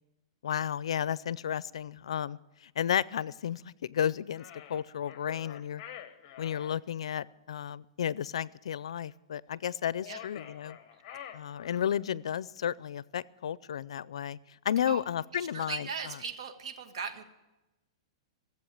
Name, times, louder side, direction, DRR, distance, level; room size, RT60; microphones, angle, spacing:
voice 1, 0.4-5.8 6.4-10.8 11.3-14.4 14.6-15.9, left 9 dB, 85° left, 21 dB, 0.4 m, -33 dB
sound 1, 4.3-6.8 9.9-12.1, left 10 dB, 35° left, 1.2 m, -47 dB
voice 2, 15.3-17.2, right 5 dB, 75° right, 7 dB, 1.7 m, -38 dB
16.5 x 7.7 x 8.7 m, 1.0 s
hypercardioid pair, 160°, 3 cm